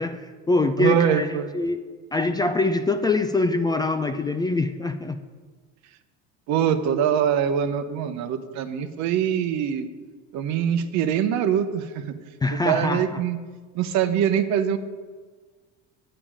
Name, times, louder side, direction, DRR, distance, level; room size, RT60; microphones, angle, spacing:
voice 1, 0.0-1.3 1.5-1.8 2.1-5.2 12.4-13.0, left 2 dB, 15° left, 8 dB, 0.3 m, -24 dB
voice 2, 0.8-1.5 6.5-9.9 10.3-12.1 12.5-13.4 13.7-14.8, right 9 dB, 60° right, 10 dB, 0.8 m, -23 dB
8.9 x 8.8 x 5.0 m, 1.4 s
cardioid pair, 125°, 31 cm